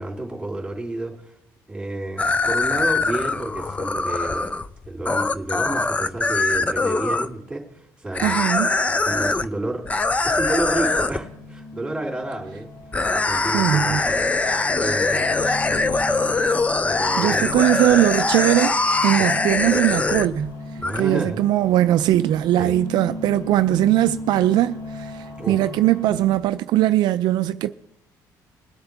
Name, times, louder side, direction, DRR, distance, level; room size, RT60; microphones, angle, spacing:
voice 1, 0.0-1.3 1.7-4.5 4.8-8.5 9.0-9.8 10.2-12.7 13.1-14.2 14.7-16.4 16.9-17.5 19.2-19.3 20.8-21.4 22.6-22.8 25.4-25.6, right 2 dB, 10° right, 3.3 m, -30 dB
sound 1, 2.2-7.3 8.1-9.5 9.9-11.2 12.9-20.5 20.8-21.0, left 3 dB, 15° left, 0.5 m, -22 dB
voice 2, 8.2-8.8 13.5-14.0 17.2-20.5 21.0-27.7, right 13 dB, 70° right, 0.4 m, -20 dB
sound 2, 9.9-26.4, left 2 dB, 80° left, 6.1 m, -37 dB
21.5 x 8.0 x 3.5 m
cardioid pair, 110°, 8 cm